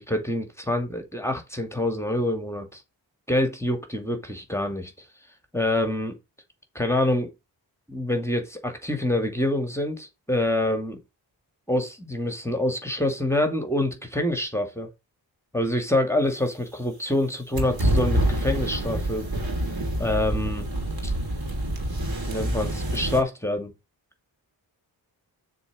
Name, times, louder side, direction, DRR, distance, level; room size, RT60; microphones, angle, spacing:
voice 1, 0.1-2.8 3.3-5.1 5.5-6.2 6.7-7.3 7.9-11.0 11.7-14.9 15.5-19.3 20.0-20.7 21.0-21.1 22.3-23.7, left 1 dB, 5° left, 2.3 m, -26 dB
sound 1, 17.5-23.2, right 1 dB, 50° right, 2.8 m, -26 dB
7.0 x 4.0 x 6.2 m
supercardioid pair, 40°, 47 cm